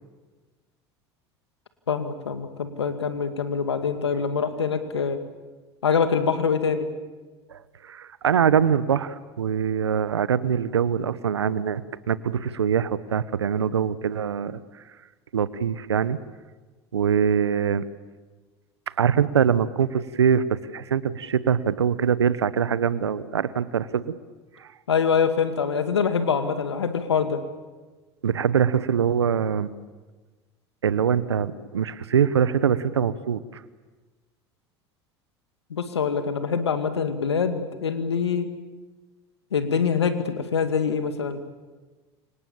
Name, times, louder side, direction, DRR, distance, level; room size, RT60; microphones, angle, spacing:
voice 1, 1.9-5.2 5.8-6.9 24.9-27.4 35.7-38.5 39.5-41.4, left 6 dB, 90° left, 9 dB, 2.2 m, -24 dB
voice 2, 7.8-14.6 15.3-16.2 16.9-17.9 19.0-24.1 24.6-24.7 28.2-29.7 30.8-33.6, right 7 dB, 90° right, 16 dB, 1.1 m, -23 dB
29.5 x 26.0 x 7.2 m, 1.3 s
hypercardioid pair, 75°, 14 cm